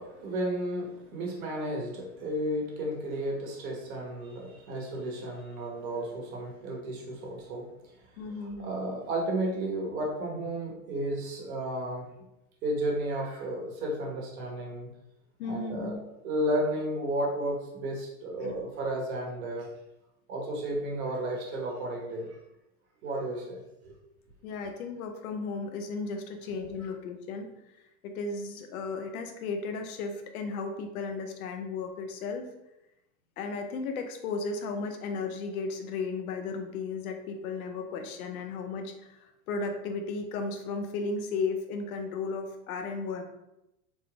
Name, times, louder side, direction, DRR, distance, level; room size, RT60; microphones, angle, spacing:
voice 1, 0.0-7.7 8.2-12.1 12.6-14.9 15.4-16.0 16.2-19.7 20.3-22.4 23.0-23.6 23.8-23.9, right 1 dB, 70° right, -2 dB, 1.4 m, -33 dB
voice 2, 8.2-8.7 15.4-16.0 18.4-18.7 24.4-27.5 27.8-32.5 33.4-43.2, left 4 dB, 75° left, 5 dB, 0.7 m, -35 dB
4.0 x 3.1 x 2.4 m, 0.89 s
hypercardioid pair, 100°, 43 cm